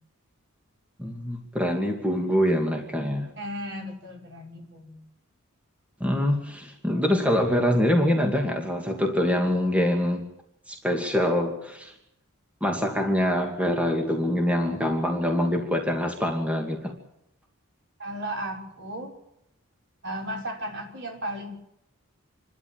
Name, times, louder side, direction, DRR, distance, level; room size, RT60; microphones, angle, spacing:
voice 1, 1.0-3.3 6.0-10.2 10.7-11.9 12.6-16.9, equal, 5° right, 2 dB, 2.4 m, -24 dB
voice 2, 3.3-5.0 18.0-19.1 20.0-21.5, right 1 dB, 55° right, 1 dB, 5.9 m, -35 dB
28.5 x 12.5 x 8.9 m, 0.81 s
head